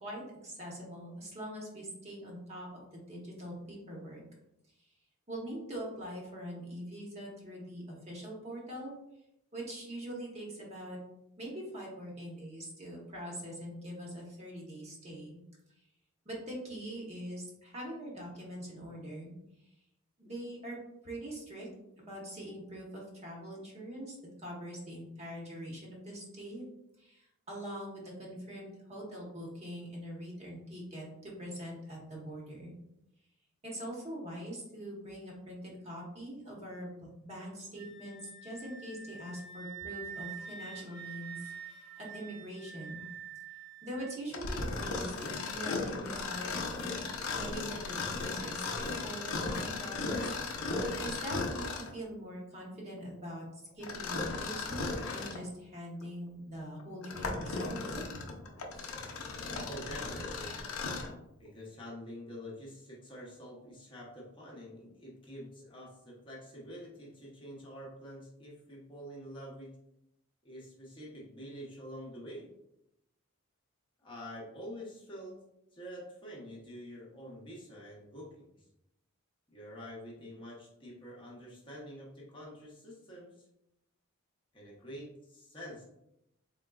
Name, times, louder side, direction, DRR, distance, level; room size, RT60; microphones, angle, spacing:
voice 1, 0.0-2.7 2.9-4.2 5.3-8.9 9.5-11.0 11.4-15.4 16.2-19.3 20.2-20.8 21.0-21.7 22.0-24.2 24.4-26.6 27.0-32.7 33.6-43.1 43.8-46.8 47.3-50.2 51.0-53.5 53.8-58.0 58.7-58.9, equal, 30° right, -3 dB, 1.0 m, -43 dB
Wind instrument woodwind instrument, 37.8-44.2, right 7 dB, 70° right, 1.1 m, -46 dB
Mechanisms, 44.3-52.0 53.8-55.4 56.0-56.1 56.8-61.2, left 3 dB, 75° left, 0.6 m, -36 dB
voice 2, 59.6-60.6 61.4-69.8 70.4-72.5 74.0-75.5 75.7-78.7 79.5-83.5 84.5-85.8, equal, 25° left, -4 dB, 0.8 m, -47 dB
3.8 x 3.6 x 2.3 m, 0.84 s
head